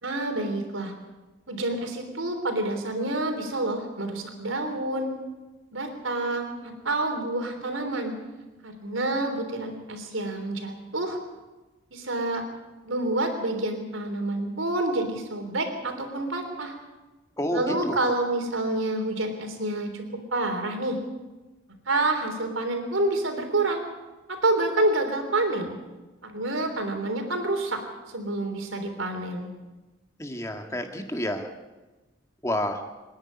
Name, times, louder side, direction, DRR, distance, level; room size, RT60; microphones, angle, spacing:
voice 1, 0.0-0.9 1.5-5.1 5.7-8.1 8.6-11.2 11.9-12.4 12.8-16.7 17.5-20.0 20.3-21.0 21.9-23.8 24.3-25.8 26.2-27.8 28.1-29.5, right 2 dB, 80° right, 5 dB, 3.5 m, -28 dB
voice 2, 17.4-18.0 30.2-31.5 32.4-32.8, left 1 dB, 15° left, 4 dB, 1.8 m, -29 dB
25.5 x 10.5 x 9.8 m, 1.2 s
head